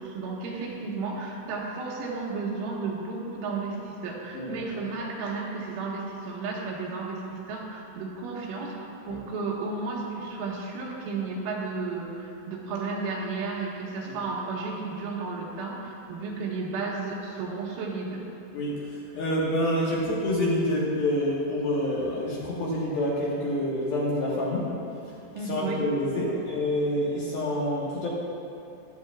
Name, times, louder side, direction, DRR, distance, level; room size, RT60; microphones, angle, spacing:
voice 1, 0.0-18.2 19.9-20.0 25.3-25.9, right 4 dB, 80° right, -4 dB, 3.9 m, -33 dB
voice 2, 18.5-24.7 25.4-28.1, left 1 dB, 65° left, -6 dB, 2.6 m, -27 dB
15.5 x 12.5 x 2.3 m, 2.7 s
omnidirectional pair, 5.6 m